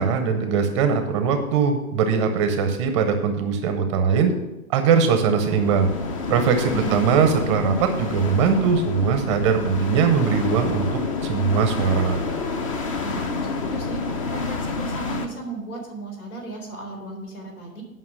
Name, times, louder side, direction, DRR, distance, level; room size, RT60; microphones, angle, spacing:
voice 1, 0.0-4.3 4.7-5.9 6.3-12.2, right 6 dB, 20° right, 7 dB, 0.6 m, -21 dB
sound 1, 5.1-15.3, left 3 dB, 25° left, 0.5 m, -28 dB
voice 2, 6.7-7.0 13.0-14.0 14.3-17.8, right 2 dB, 85° left, 2 dB, 3.7 m, -35 dB
9.6 x 5.5 x 6.3 m, 1.0 s
hypercardioid pair, 145°, 42 cm